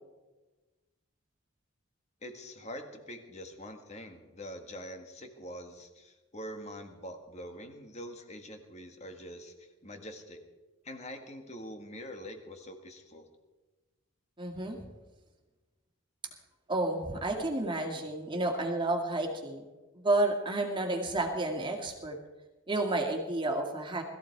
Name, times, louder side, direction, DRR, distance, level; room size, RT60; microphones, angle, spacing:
voice 1, 2.2-10.4 10.8-13.3, equal, 30° left, 5 dB, 1.7 m, -44 dB
voice 2, 14.4-14.8 16.7-19.7 19.9-22.2 22.7-24.0, right 2 dB, 20° right, 2 dB, 2.2 m, -31 dB
20.5 x 14.5 x 4.7 m, 1.2 s
head